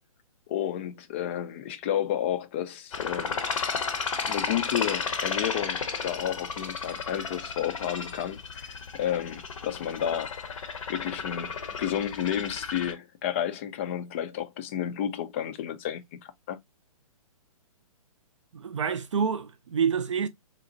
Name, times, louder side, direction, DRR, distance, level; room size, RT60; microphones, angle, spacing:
voice 1, 0.5-3.4 4.3-10.5 10.9-16.6, left 10 dB, 20° left, 0.3 m, -31 dB
sound 1, 2.9-12.9, left 5 dB, 60° left, 0.8 m, -33 dB
voice 2, 18.5-20.3, right 6 dB, 55° right, 0.4 m, -27 dB
4.0 x 2.1 x 2.5 m
figure-of-eight pair, 125°, 19 cm